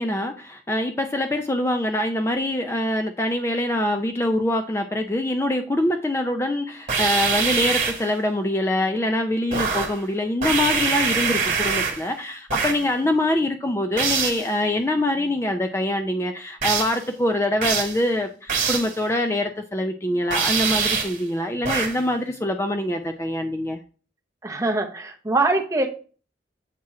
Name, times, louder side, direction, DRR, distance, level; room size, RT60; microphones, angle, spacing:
voice 1, 0.0-23.8, left 1 dB, 15° left, 0.4 m, -24 dB
sound 1, 6.9-8.1 9.5-10.0 10.4-12.1 12.5-12.9 14.0-14.5 16.6-17.0 17.6-18.0 18.5-19.0 20.3-21.2 21.6-22.0, right 5 dB, 45° right, 1.4 m, -24 dB
voice 2, 24.4-25.9, right 2 dB, 20° right, 0.7 m, -23 dB
7.4 x 2.9 x 4.7 m
head